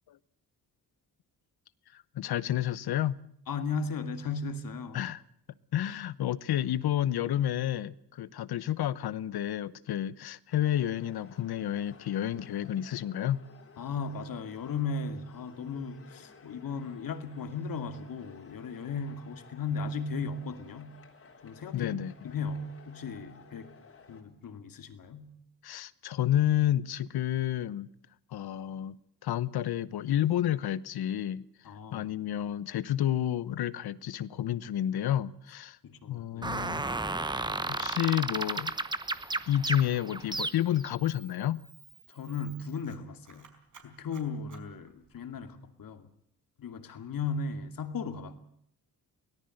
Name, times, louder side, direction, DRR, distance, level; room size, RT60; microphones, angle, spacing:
voice 1, 1.9-3.2 4.9-5.2 5.7-13.4 21.7-22.1 25.6-27.9 28.3-29.0 29.2-31.4 31.9-35.8 36.1-36.8 37.7-38.7 39.5-41.6, left 11 dB, 75° left, 1.0 m, -30 dB
voice 2, 3.5-5.0 13.8-20.9 21.4-22.0 22.2-23.7 24.1-25.4 31.6-32.1 35.8-36.6 42.1-43.5 43.8-46.1 46.6-48.4, left 4 dB, 60° left, 2.5 m, -36 dB
sound 1, 10.5-24.2, left 5 dB, 35° left, 3.6 m, -55 dB
sound 2, 36.4-40.9, right 2 dB, 10° right, 0.9 m, -33 dB
Camera, 38.3-45.4, right 6 dB, 55° right, 4.6 m, -57 dB
24.0 x 18.0 x 7.9 m
wide cardioid pair, 140°, 38 cm